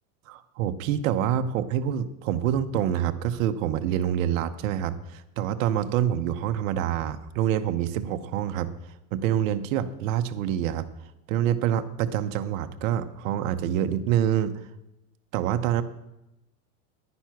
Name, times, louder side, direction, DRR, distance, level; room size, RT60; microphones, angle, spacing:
voice 1, 0.3-8.7 9.1-10.9 11.3-14.5 15.3-15.8, right 10 dB, 70° right, 9 dB, 1.0 m, -26 dB
10.5 x 9.8 x 5.9 m, 0.92 s
supercardioid pair, 125°, 41 cm